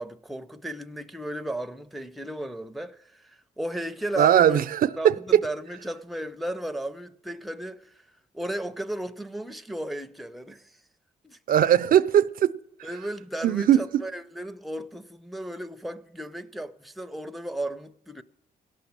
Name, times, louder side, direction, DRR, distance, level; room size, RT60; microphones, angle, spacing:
voice 1, 0.0-4.7 5.0-8.0 8.3-10.7 11.2-11.4 12.8-18.2, right 1 dB, ahead, 0.5 m, -35 dB
voice 2, 4.2-5.4 11.5-12.9 13.4-13.8, right 10 dB, 60° right, 0.4 m, -20 dB
17.0 x 6.1 x 7.3 m
cardioid pair, 95°, 16 cm